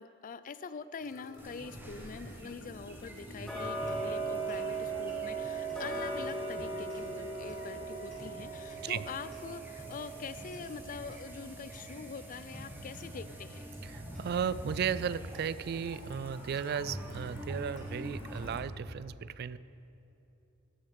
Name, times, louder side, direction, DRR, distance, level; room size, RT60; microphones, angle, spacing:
voice 1, 0.0-13.7, left 5 dB, 45° left, 14 dB, 0.4 m, -44 dB
sound 1, 1.0-18.6, left 1 dB, 70° left, 1.0 m, -54 dB
sound 2, 1.4-18.6, equal, 10° right, 1.2 m, -46 dB
Tick-tock, 3.4-14.3 14.7-14.8 15.3-15.4 15.9-16.0 16.6-16.7 17.1-17.2 17.8-17.9 18.4-18.5, right 3 dB, 5° left, 2.7 m, -39 dB
voice 2, 13.8-19.6, right 7 dB, 50° right, 16 dB, 0.3 m, -35 dB
15.5 x 6.4 x 5.7 m, 2.9 s
head